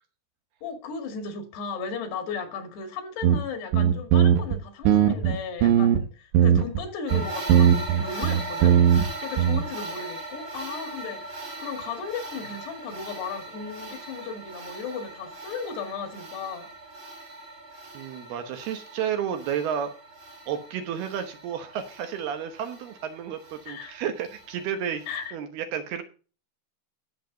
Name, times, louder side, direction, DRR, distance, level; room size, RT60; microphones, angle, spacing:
voice 1, 0.6-8.8 9.2-11.2 11.6-16.7 23.7-23.9 25.1-25.4, left 5 dB, 70° left, 4.1 m, -35 dB
sound 1, 3.2-3.4 3.7-4.6 4.9-6.0 6.3-6.8 7.1-9.1 9.4-9.6, right 9 dB, 90° right, 3.7 m, -19 dB
sound 2, 7.1-25.3, right 2 dB, 35° right, 2.3 m, -40 dB
voice 2, 17.9-19.9 20.5-26.0, right 8 dB, 70° right, 2.8 m, -31 dB
17.5 x 7.4 x 3.9 m
omnidirectional pair, 5.1 m